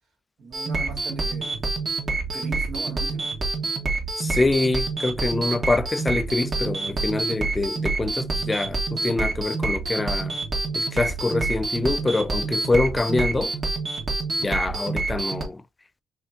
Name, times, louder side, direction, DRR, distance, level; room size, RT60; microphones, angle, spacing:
voice 1, 0.4-1.6 2.3-3.4, right 4 dB, 70° right, 1.9 m, -38 dB
sound 1, 0.5-15.4, right 3 dB, 45° right, 1.6 m, -27 dB
voice 2, 4.2-10.4 10.8-13.5 14.4-15.6, left 2 dB, 20° left, 0.3 m, -25 dB
4.3 x 3.5 x 2.8 m
cardioid pair, 90°, 0 cm